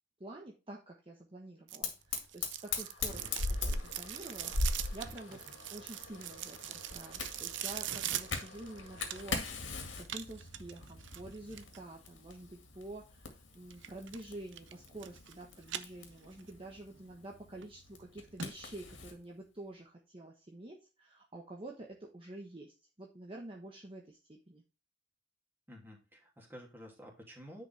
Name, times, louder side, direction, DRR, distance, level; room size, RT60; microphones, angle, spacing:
voice 1, 0.2-5.4 5.7-9.4 10.0-24.6, right 2 dB, 30° right, -1 dB, 1.2 m, -48 dB
sound 1, 1.7-9.5 10.0-11.8 13.7-14.2 14.5-15.3 15.6-16.5 16.9-17.0 17.6-17.7 18.0-18.1 18.4-18.5 18.9-19.0, right 11 dB, 75° right, 0.7 m, -42 dB
Fire, 1.8-19.2, left 3 dB, 80° left, 2.1 m, -41 dB
voice 2, 25.7-27.7, equal, 10° right, -1 dB, 2.6 m, -51 dB
9.8 x 5.3 x 3.4 m, 0.30 s
head